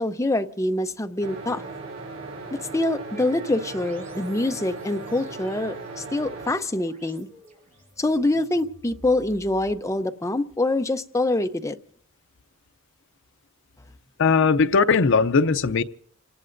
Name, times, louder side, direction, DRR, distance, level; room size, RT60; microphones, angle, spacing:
voice 1, 0.0-1.6 2.7-7.3 8.0-11.8, left 2 dB, 15° left, 0.6 m, -25 dB
sound 1, 1.2-6.5, right 3 dB, 85° right, 5.4 m, -37 dB
sound 2, 3.2-10.3, equal, 35° right, 7.8 m, -51 dB
voice 2, 14.2-15.8, left 5 dB, 60° left, 0.6 m, -19 dB
30.0 x 18.5 x 2.6 m
head